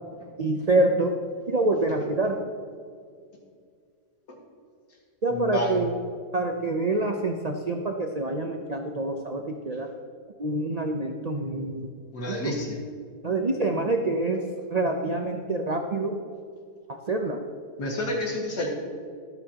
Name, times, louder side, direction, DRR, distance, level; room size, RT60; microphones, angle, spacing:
voice 1, 0.4-1.1 1.5-2.4 5.2-5.9 6.3-9.9 10.4-11.8 12.3-12.5 13.2-14.4 14.7-16.2 16.9-17.4, right 2 dB, 75° right, 3 dB, 0.3 m, -26 dB
voice 2, 5.3-5.8 12.1-12.8 17.8-18.7, left 1 dB, 80° left, -1 dB, 2.4 m, -29 dB
12.5 x 12.0 x 2.9 m, 2.1 s
omnidirectional pair, 1.7 m